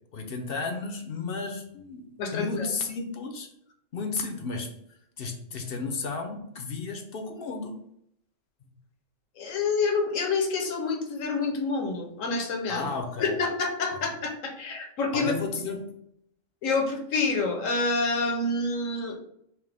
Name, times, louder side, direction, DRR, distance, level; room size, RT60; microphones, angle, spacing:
voice 1, 0.1-3.5 3.9-4.7 5.2-7.8 12.7-13.4 13.9-14.1 15.1-16.0, left 4 dB, 55° left, 4 dB, 0.7 m, -33 dB
voice 2, 2.2-2.7 9.4-12.9 13.2-15.3 16.6-19.2, left 3 dB, 75° left, 4 dB, 1.2 m, -27 dB
5.9 x 2.1 x 3.3 m, 0.73 s
omnidirectional pair, 1.4 m